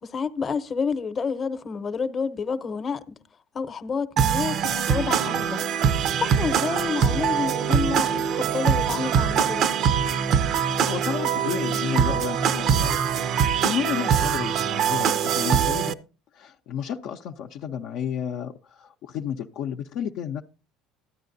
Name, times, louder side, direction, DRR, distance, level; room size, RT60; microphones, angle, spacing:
voice 1, 0.0-3.1 3.5-5.6 6.2-9.7, left 5 dB, 35° left, 0.8 m, -29 dB
sound 1, 4.2-15.9, right 7 dB, 60° right, 0.6 m, -23 dB
voice 2, 10.8-13.0 13.3-16.0 16.3-20.4, left 9 dB, 65° left, 0.6 m, -32 dB
13.5 x 9.5 x 2.6 m
hypercardioid pair, 75°, 0 cm